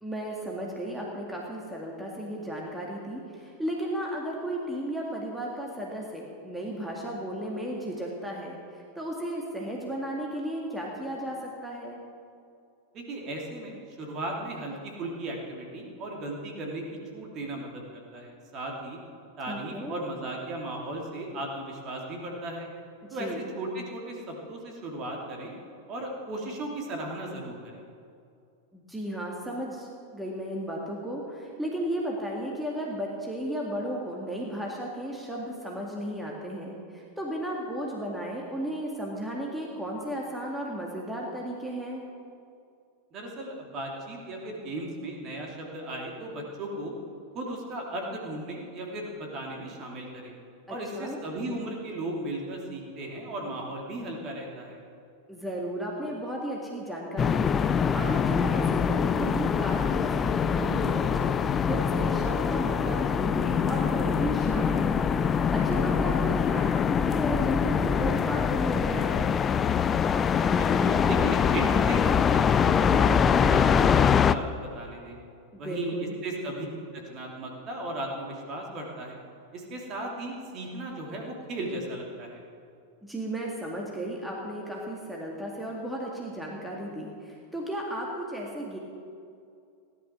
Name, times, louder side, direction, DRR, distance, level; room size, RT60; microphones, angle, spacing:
voice 1, 0.0-12.0 19.5-20.0 23.0-23.5 28.7-42.0 50.7-51.2 55.3-69.2 75.5-76.2 83.0-88.8, right 1 dB, 5° right, -2 dB, 2.1 m, -34 dB
voice 2, 12.9-19.0 19.4-22.7 23.1-25.6 25.9-27.8 43.1-46.9 47.3-50.3 50.7-54.8 70.5-75.2 75.6-76.7 76.9-79.2 79.5-82.4, right 1 dB, 35° right, 0 dB, 2.9 m, -36 dB
sound 1, 57.2-74.3, left 7 dB, 25° left, 0.5 m, -24 dB
16.5 x 11.5 x 6.1 m, 2.4 s
figure-of-eight pair, 90°, 0 cm